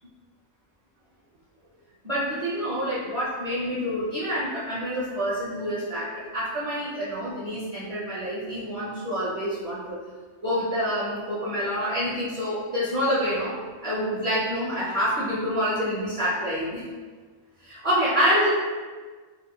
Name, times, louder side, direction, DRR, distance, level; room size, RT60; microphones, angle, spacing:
voice 1, 2.0-10.0 10.4-13.5 13.8-16.8 17.6-18.5, equal, 30° right, -10 dB, 0.8 m, -27 dB
3.5 x 2.4 x 2.3 m, 1.4 s
omnidirectional pair, 1.3 m